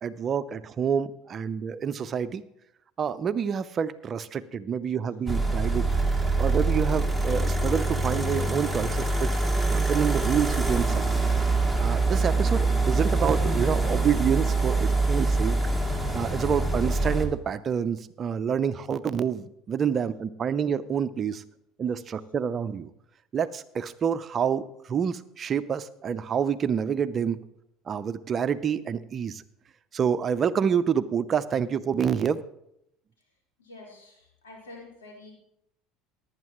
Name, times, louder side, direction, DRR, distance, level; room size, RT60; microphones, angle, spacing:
voice 1, 0.0-2.4 3.0-5.9 6.4-9.3 9.7-11.0 11.8-15.6 16.1-21.4 21.8-22.9 23.3-27.4 27.9-29.4 29.9-32.4, right 7 dB, 40° right, 13 dB, 0.6 m, -27 dB
sound 1, 5.3-17.3, right 3 dB, 5° left, 1.8 m, -25 dB
voice 2, 33.6-35.3, left 2 dB, 80° left, -2 dB, 4.0 m, -47 dB
18.0 x 9.5 x 3.0 m, 0.76 s
hypercardioid pair, 70°, 0 cm